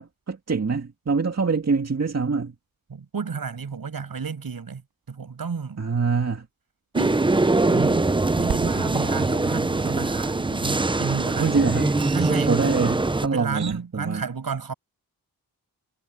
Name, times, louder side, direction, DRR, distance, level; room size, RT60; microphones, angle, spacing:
voice 1, 0.0-2.5 5.8-6.5 11.4-11.9 12.4-14.3, right 4 dB, 40° right, 2.1 m, -25 dB
voice 2, 2.9-4.8 5.1-5.8 6.9-7.3 7.7-11.5 12.1-12.6 13.2-14.7, right 5 dB, 65° right, 6.2 m, -31 dB
sound 1, 4.8-4.9 5.1-5.2 8.5-13.8, right 7 dB, 90° right, 4.6 m, -39 dB
sound 2, 7.0-13.3, right 2 dB, 15° right, 0.6 m, -23 dB
wide cardioid pair, 95°, 38 cm